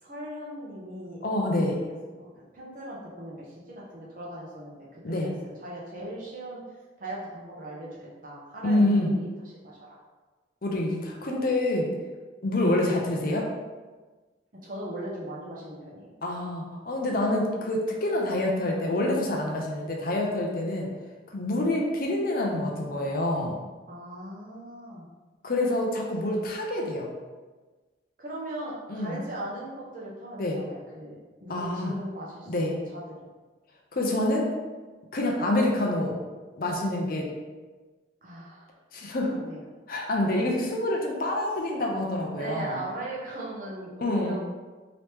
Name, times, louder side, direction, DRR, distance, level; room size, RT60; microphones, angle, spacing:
voice 1, 0.0-4.9 5.2-5.3 5.6-6.6 7.0-9.3 9.6-10.0 14.5-16.1 20.9-21.0 23.9-25.1 28.2-33.3 38.2-38.7 39.3-39.6 40.4-40.7 42.4-44.6, right 1 dB, 45° right, -5 dB, 0.8 m, -39 dB
voice 2, 1.2-1.8 5.0-5.3 8.6-9.2 10.6-11.9 12.4-13.5 16.2-20.9 21.3-23.6 25.4-27.1 28.9-29.1 30.4-30.6 31.5-31.9 32.5-32.7 33.9-34.5 35.1-36.2 36.6-37.2 38.9-39.4 39.9-42.8 44.0-44.4, left 1 dB, 45° left, -1 dB, 0.5 m, -27 dB
3.0 x 2.9 x 3.3 m, 1.3 s
head